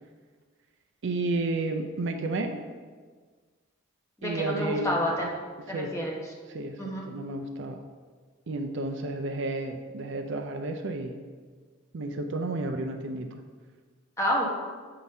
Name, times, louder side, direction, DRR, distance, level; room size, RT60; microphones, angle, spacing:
voice 1, 1.0-2.6 4.2-5.0 5.7-6.0 6.5-7.8 8.5-11.2 11.9-13.4, right 2 dB, 55° right, 5 dB, 0.5 m, -31 dB
voice 2, 4.2-5.3 5.7-6.2 6.8-7.1 14.2-14.4, equal, 15° left, -3 dB, 1.0 m, -28 dB
7.2 x 3.9 x 5.4 m, 1.5 s
head